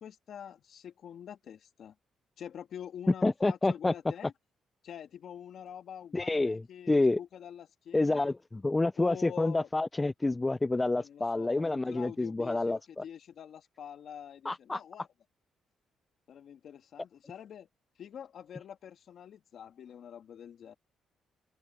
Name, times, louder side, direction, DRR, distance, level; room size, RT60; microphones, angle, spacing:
voice 1, 0.0-1.9 2.4-4.3 4.8-8.3 9.0-9.7 11.0-15.1 16.3-17.7 18.0-20.7, left 9 dB, 65° left, 2.4 m, -46 dB
voice 2, 3.2-3.9 6.1-6.6 6.9-7.2 7.9-13.0 14.4-14.8, left 2 dB, 20° left, 0.3 m, -28 dB
open air
cardioid pair, 90°, 0 cm